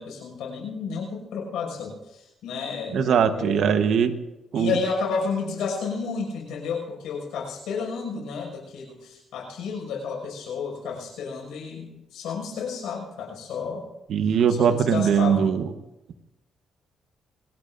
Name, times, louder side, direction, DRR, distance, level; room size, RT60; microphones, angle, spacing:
voice 1, 0.0-3.8 4.5-13.9 14.2-15.5, left 5 dB, 85° left, 0 dB, 6.0 m, -31 dB
voice 2, 2.9-4.1 4.5-4.8 14.1-15.6, right 7 dB, 70° right, 9 dB, 1.2 m, -21 dB
26.5 x 18.5 x 2.6 m, 0.98 s
cardioid pair, 90°, 0 cm